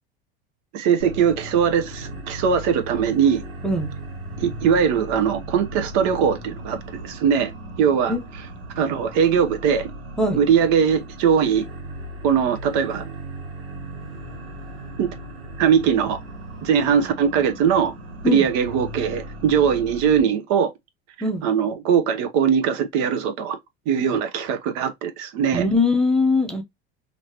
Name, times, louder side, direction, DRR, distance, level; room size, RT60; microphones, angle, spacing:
voice 1, 0.7-3.4 4.4-7.5 7.8-8.1 8.8-9.9 10.4-11.6 12.2-13.0 15.0-15.1 15.6-16.2 16.6-17.9 18.2-20.7 21.4-23.6 23.9-25.7, right 7 dB, 60° right, 0.9 m, -20 dB
sound 1, 1.0-20.2, right 1 dB, 80° right, 1.7 m, -37 dB
voice 2, 25.5-26.6, left 2 dB, ahead, 0.8 m, -21 dB
3.1 x 2.9 x 2.8 m
supercardioid pair, 105°, 32 cm